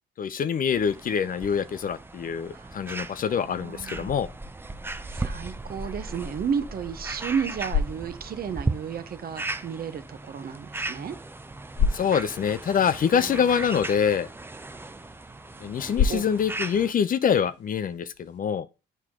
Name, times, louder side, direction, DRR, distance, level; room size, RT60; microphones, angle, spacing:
voice 1, 0.2-4.3 11.9-14.3 15.6-18.7, left 7 dB, 45° left, 0.5 m, -25 dB
sound 1, 0.7-16.9, right 2 dB, 10° right, 0.5 m, -37 dB
voice 2, 3.3-4.1 5.1-11.2 13.1-13.5 16.1-16.2, right 7 dB, 50° right, 0.8 m, -33 dB
sound 2, 7.3-18.4, left 5 dB, 60° left, 1.3 m, -34 dB
6.8 x 4.6 x 3.6 m
cardioid pair, 90°, 20 cm